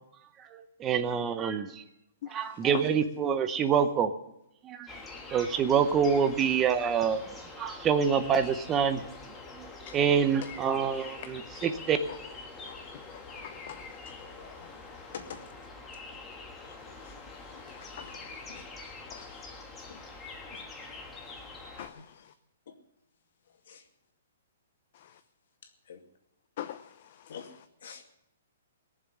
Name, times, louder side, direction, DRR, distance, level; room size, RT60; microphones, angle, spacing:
voice 1, 0.5-1.8 2.3-4.1 4.6-4.9 5.3-9.0 9.6-9.7 9.9-12.0, right 7 dB, 15° right, 0.7 m, -26 dB
sound 1, 4.9-21.9, left 3 dB, 10° left, 1.5 m, -45 dB
voice 2, 13.1-13.8 17.7-18.2 19.1-19.2 21.8-22.0 26.6-26.8, left 11 dB, 40° left, 0.6 m, -43 dB
voice 3, 14.2-14.6 15.1-15.4 16.6-16.8 18.0-18.6 19.1-19.3 19.9-20.0 20.5-20.6 22.0-22.1 22.7-22.8 23.7-23.8 25.9-26.0 27.3-27.4 27.8-28.1, left 7 dB, 60° left, 2.3 m, -46 dB
19.0 x 7.1 x 9.9 m
hypercardioid pair, 170°, 0 cm